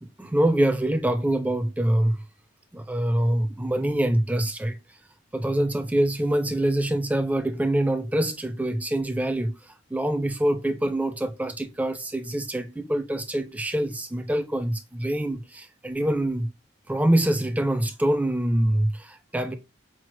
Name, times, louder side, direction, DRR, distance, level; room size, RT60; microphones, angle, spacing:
voice 1, 0.2-2.2 2.7-4.8 5.3-9.5 9.9-16.5 16.9-19.5, right 1 dB, 5° right, 0.3 m, -25 dB
5.9 x 2.0 x 3.0 m
head